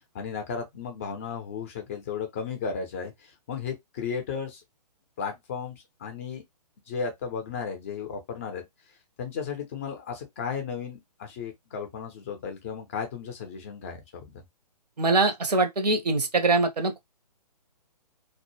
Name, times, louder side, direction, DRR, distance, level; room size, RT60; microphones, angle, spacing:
voice 1, 0.1-4.6 5.2-6.4 6.9-8.6 9.2-14.4, left 6 dB, 20° left, 0.4 m, -34 dB
voice 2, 15.0-17.0, right 3 dB, 70° right, 0.6 m, -23 dB
2.0 x 2.0 x 2.9 m
figure-of-eight pair, 130°, 21 cm